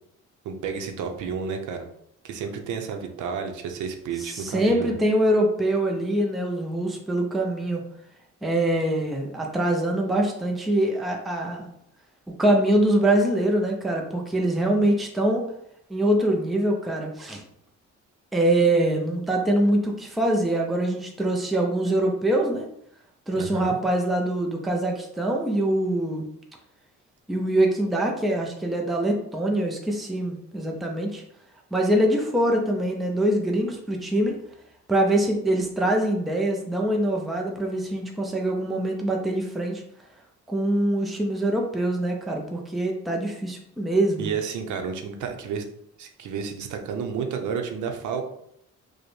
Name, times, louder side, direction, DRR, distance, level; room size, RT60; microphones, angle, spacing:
voice 1, 0.4-1.9 2.2-5.0 23.3-23.8 44.2-45.6 46.0-48.2, right 6 dB, 80° right, 4 dB, 0.6 m, -31 dB
voice 2, 4.2-7.8 8.4-11.7 12.3-15.4 15.9-17.4 18.3-22.7 23.3-26.3 27.3-31.2 31.7-34.4 34.9-39.8 40.5-44.3, right 1 dB, ahead, 1 dB, 0.4 m, -24 dB
4.9 x 2.1 x 3.1 m, 0.73 s
cardioid pair, 160°, 30 cm